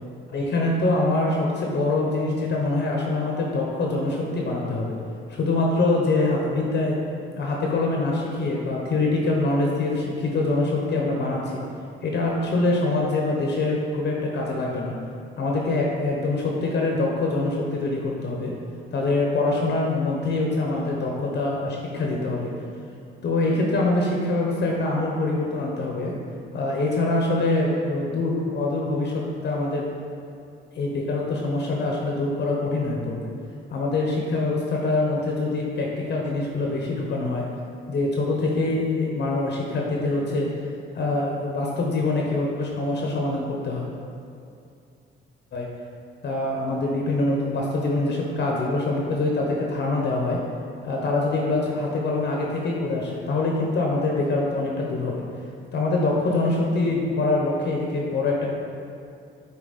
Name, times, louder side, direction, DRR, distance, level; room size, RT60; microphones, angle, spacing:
voice 1, 0.3-5.0 5.3-7.0 7.3-11.6 12.0-15.0 15.4-18.5 18.9-22.5 23.2-26.2 26.5-29.9 30.7-33.3 33.7-37.4 37.9-40.5 40.9-43.8 45.5-45.7 46.2-50.4 50.8-55.2 55.7-58.5, left 2 dB, 60° left, -1 dB, 1.0 m, -24 dB
6.1 x 4.2 x 4.2 m, 2.5 s
cardioid pair, 90°, 20 cm